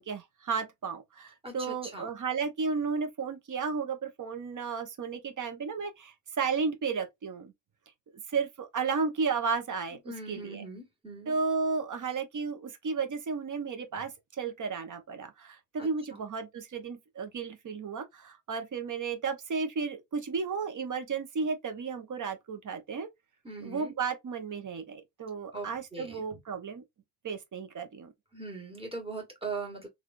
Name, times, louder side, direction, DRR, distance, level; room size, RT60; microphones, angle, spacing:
voice 1, 0.0-7.5 8.3-10.6 11.3-23.1 23.6-26.8 27.2-28.1, right 5 dB, 40° right, 0.8 m, -33 dB
voice 2, 1.4-2.1 10.0-11.3 15.8-16.2 23.4-23.9 25.5-26.2 28.3-29.9, right 3 dB, 10° right, 1.4 m, -40 dB
3.4 x 2.4 x 2.5 m
wide cardioid pair, 135°, 46 cm